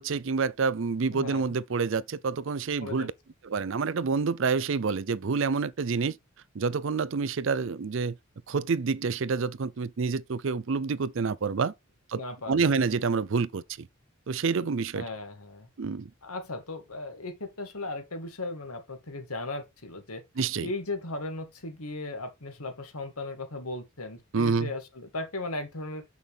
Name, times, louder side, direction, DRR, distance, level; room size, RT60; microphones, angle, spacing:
voice 1, 0.0-3.1 3.4-6.2 6.5-8.1 8.5-11.7 12.1-12.2 12.5-13.9 14.3-15.0 15.8-16.1 20.4-20.7 24.3-24.7, right 5 dB, 60° right, 0.5 m, -28 dB
voice 2, 1.1-1.6 2.8-3.1 12.1-12.6 14.9-15.7 16.2-20.2 20.6-26.0, left 2 dB, 90° left, 2.1 m, -37 dB
7.1 x 6.2 x 3.5 m
head